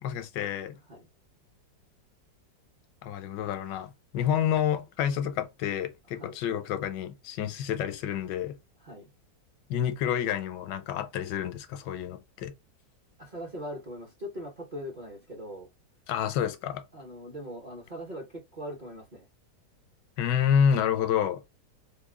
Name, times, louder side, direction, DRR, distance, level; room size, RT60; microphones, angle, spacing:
voice 1, 0.0-0.8 3.0-8.6 9.7-12.5 16.1-16.8 20.2-21.4, left 8 dB, 85° left, 1.2 m, -29 dB
voice 2, 13.2-15.7 16.9-19.3, equal, 40° right, 0.6 m, -40 dB
3.6 x 2.1 x 3.5 m
omnidirectional pair, 1.9 m